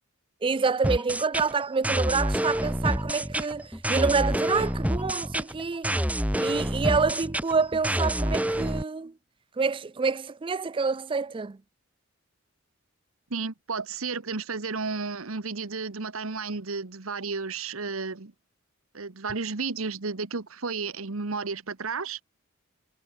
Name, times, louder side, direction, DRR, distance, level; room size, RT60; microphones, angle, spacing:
voice 1, 0.4-5.9 6.4-9.1 9.6-11.6, right 4 dB, 25° right, 0.4 m, -27 dB
sound 1, 0.8-8.8, right 1 dB, 5° right, 2.1 m, -28 dB
voice 2, 13.3-18.3 18.9-22.2, right 4 dB, 80° right, 1.3 m, -32 dB
head